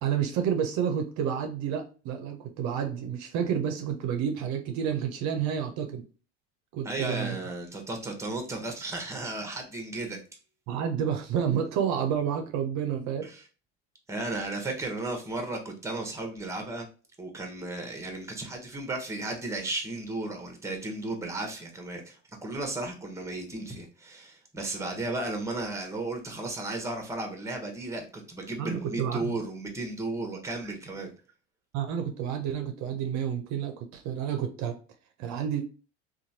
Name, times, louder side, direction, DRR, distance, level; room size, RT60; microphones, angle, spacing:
voice 1, 0.0-6.0 6.7-7.4 10.7-13.3 28.6-29.4 31.7-34.8 35.2-35.6, right 8 dB, 55° right, 5 dB, 0.6 m, -30 dB
voice 2, 6.8-10.2 13.2-13.4 14.1-16.9 17.2-31.1, right 2 dB, 10° right, 4 dB, 0.8 m, -34 dB
3.0 x 2.3 x 2.7 m, 0.36 s
supercardioid pair, 90°, 34 cm